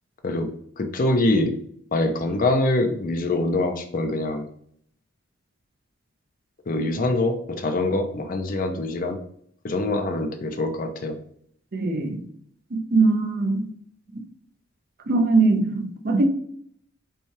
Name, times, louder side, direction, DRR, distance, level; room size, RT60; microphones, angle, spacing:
voice 1, 0.2-1.6 1.9-4.5 6.7-9.2 9.6-11.2, left 2 dB, 45° left, 0.5 m, -24 dB
voice 2, 11.7-12.2 12.7-13.7 15.1-16.3, right 3 dB, 50° right, 0.5 m, -21 dB
5.3 x 2.3 x 3.2 m
head